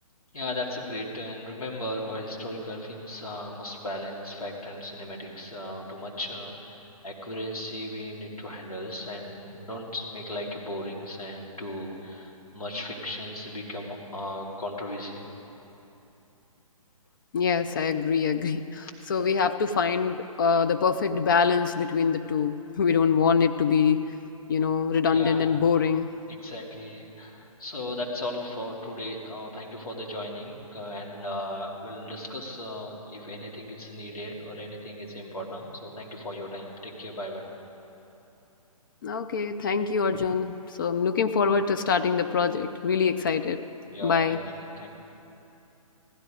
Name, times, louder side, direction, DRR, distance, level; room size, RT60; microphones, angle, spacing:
voice 1, 0.3-15.3 25.1-25.5 26.3-37.5 43.9-44.4 44.8-44.9, left 1 dB, 75° left, -2 dB, 2.7 m, -36 dB
voice 2, 17.3-24.1 24.5-26.1 39.0-43.6 44.0-44.4, left 6 dB, 35° left, 8 dB, 0.4 m, -24 dB
15.5 x 13.0 x 5.1 m, 2.9 s
figure-of-eight pair, 135°, 19 cm